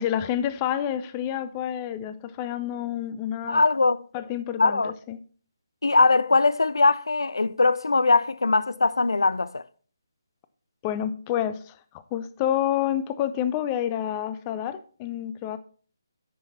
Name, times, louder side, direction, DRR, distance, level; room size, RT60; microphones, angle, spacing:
voice 1, 0.0-3.6 4.1-5.2 10.8-11.8 12.1-15.6, left 10 dB, 20° left, 0.6 m, -28 dB
voice 2, 3.5-4.0 4.6-4.9 5.8-9.6, left 3 dB, 85° left, 0.5 m, -21 dB
9.3 x 5.8 x 4.1 m
figure-of-eight pair, 155°, 2 cm